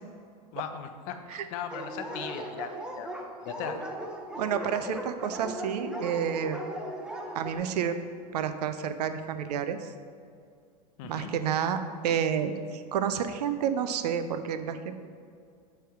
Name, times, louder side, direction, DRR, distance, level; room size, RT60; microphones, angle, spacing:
voice 1, 0.5-2.7 3.0-3.1 3.4-3.8 11.0-11.3, left 8 dB, 60° left, 7 dB, 0.7 m, -38 dB
Dog, 1.7-7.6, equal, 5° right, 0.8 m, -38 dB
voice 2, 4.4-6.6 7.3-8.0 8.3-9.8 11.0-11.8 12.0-14.9, right 8 dB, 75° right, 10 dB, 0.5 m, -29 dB
6.8 x 3.4 x 4.5 m, 2.2 s
hypercardioid pair, 100°, 20 cm